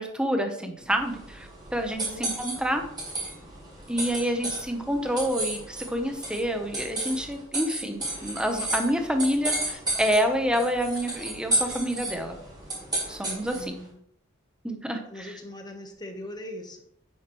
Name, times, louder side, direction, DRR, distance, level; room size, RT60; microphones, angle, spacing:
voice 1, 0.0-2.8 3.9-12.4 13.1-13.7 14.6-15.4, equal, 5° right, 5 dB, 1.0 m, -28 dB
sound 1, 0.9-13.8, right 1 dB, 20° right, 4.2 m, -33 dB
voice 2, 13.5-14.0 15.1-16.8, left 1 dB, 20° left, 4 dB, 1.3 m, -40 dB
9.2 x 8.7 x 3.2 m, 0.70 s
head